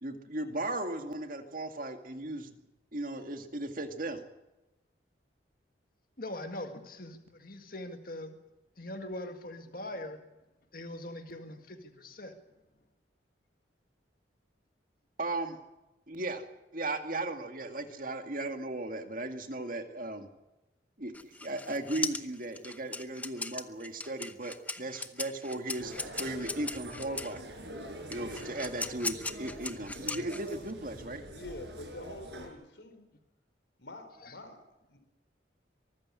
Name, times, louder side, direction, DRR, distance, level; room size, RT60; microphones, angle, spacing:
voice 1, 0.0-2.5 2.9-4.2 15.2-15.6 16.1-16.4 16.7-20.3 21.0-27.4 28.1-31.2, right 2 dB, 50° right, 6 dB, 2.1 m, -36 dB
voice 2, 6.2-8.4 8.8-10.2 10.7-12.4 34.2-34.4, left 1 dB, 50° left, 5 dB, 1.8 m, -42 dB
sound 1, 21.1-27.4 28.1-30.7, left 3 dB, 10° left, 0.8 m, -38 dB
sound 2, 25.8-32.5, right 1 dB, 70° right, 6.0 m, -45 dB
voice 3, 31.3-33.1 33.8-35.0, left 1 dB, 75° left, 8 dB, 3.9 m, -46 dB
24.0 x 14.0 x 9.7 m, 1.0 s
head